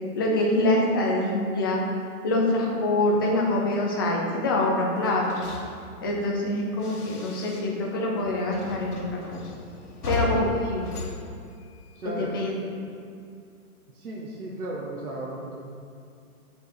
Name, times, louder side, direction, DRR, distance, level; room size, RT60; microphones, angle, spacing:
voice 1, 0.1-1.8 2.2-5.2 6.0-9.4 10.1-10.9 12.1-12.5, left 1 dB, 15° left, -2 dB, 0.7 m, -25 dB
sound 1, 5.0-7.9 8.2-12.1, left 4 dB, 90° left, 1.7 m, -36 dB
voice 2, 10.0-10.5 11.9-12.3 13.9-15.6, right 1 dB, 75° right, -4 dB, 1.7 m, -35 dB
6.9 x 5.4 x 7.1 m, 2.5 s
hypercardioid pair, 170°, 44 cm